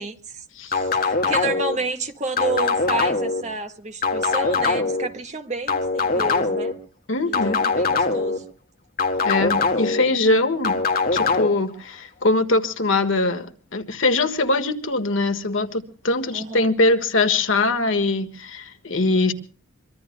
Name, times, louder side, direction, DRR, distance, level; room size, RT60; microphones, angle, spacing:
voice 1, 0.0-6.7 7.2-8.4 9.8-10.0 16.3-16.7, right 3 dB, 35° right, 1.7 m, -30 dB
sound 1, 0.7-1.8 2.4-3.4 4.0-5.1 5.7-6.7 7.3-8.4 9.0-10.0 10.6-11.5, left 4 dB, 45° left, 1.8 m, -22 dB
voice 2, 7.1-7.7 9.2-10.8 11.1-19.3, left 2 dB, 75° left, 1.6 m, -22 dB
24.5 x 23.5 x 2.2 m
head